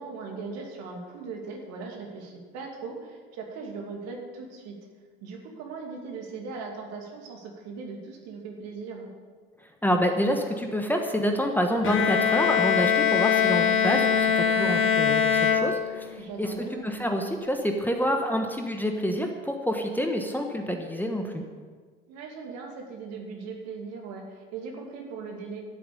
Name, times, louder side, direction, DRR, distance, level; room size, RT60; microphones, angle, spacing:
voice 1, 0.0-4.7 5.2-9.1 16.2-16.9 22.1-25.6, right 4 dB, 60° right, 1 dB, 2.7 m, -39 dB
voice 2, 9.6-21.4, equal, 5° left, 3 dB, 1.4 m, -27 dB
Bowed string instrument, 11.8-16.3, left 7 dB, 40° left, 1.1 m, -23 dB
12.5 x 7.6 x 6.9 m, 1.5 s
hypercardioid pair, 65°, 30 cm